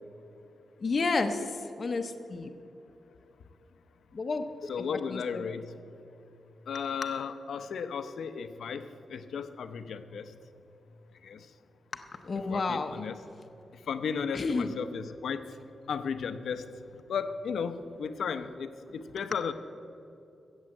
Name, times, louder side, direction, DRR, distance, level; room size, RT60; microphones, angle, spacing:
voice 1, 0.8-1.4 1.8-2.5 4.1-4.7 5.1-5.4 11.9-13.0 14.3-14.7, left 3 dB, 40° left, 6 dB, 0.7 m, -31 dB
voice 2, 4.7-5.8 6.7-10.4 11.2-11.5 12.5-13.2 13.9-15.6 15.9-16.7 17.1-19.5, left 6 dB, 75° left, 10 dB, 0.7 m, -35 dB
14.5 x 8.1 x 7.7 m, 2.8 s
wide cardioid pair, 140°, 0 cm